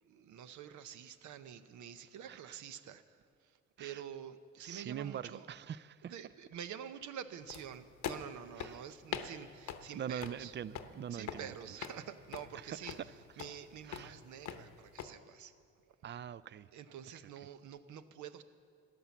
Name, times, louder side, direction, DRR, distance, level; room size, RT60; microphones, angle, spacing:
voice 1, 0.0-5.5 6.1-10.5 11.1-13.0 13.4-15.5 16.7-18.4, right 9 dB, 75° right, 0.8 m, -48 dB
voice 2, 2.2-2.6 3.8-4.0 4.6-6.1 8.6-8.8 9.9-11.5 12.5-12.6 13.9-14.1 16.0-16.7, right 9 dB, 40° right, 0.4 m, -43 dB
sound 1, 7.5-15.1, left 8 dB, 70° left, 0.9 m, -45 dB
13.5 x 10.5 x 7.1 m
cardioid pair, 90°, 30 cm